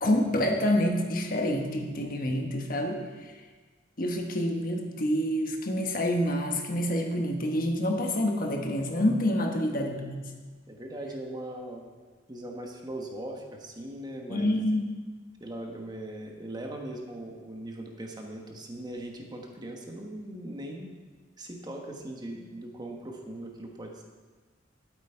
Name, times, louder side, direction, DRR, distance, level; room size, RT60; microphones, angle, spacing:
voice 1, 0.0-3.3 4.0-10.3 14.3-14.9, left 1 dB, 50° left, 3 dB, 1.3 m, -27 dB
voice 2, 9.5-10.1 10.7-11.8 12.3-14.5 15.4-20.9 21.4-24.0, right 1 dB, 20° right, 1 dB, 1.2 m, -40 dB
12.5 x 8.2 x 4.5 m, 1.4 s
head